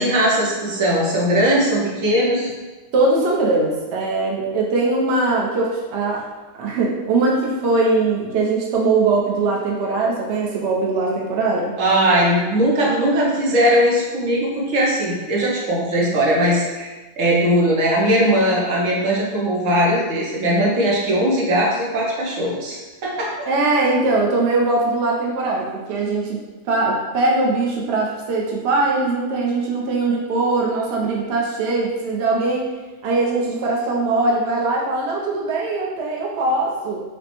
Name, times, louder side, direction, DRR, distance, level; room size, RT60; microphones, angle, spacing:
voice 1, 0.0-2.5 11.8-16.9 17.2-22.8 23.0-23.5, equal, 80° right, -4 dB, 1.2 m, -19 dB
voice 2, 2.9-6.2 6.6-11.7 23.5-26.4 26.6-32.7 33.0-37.0, right 3 dB, 60° right, -3 dB, 0.8 m, -21 dB
4.9 x 2.0 x 2.9 m, 1.2 s
omnidirectional pair, 1.3 m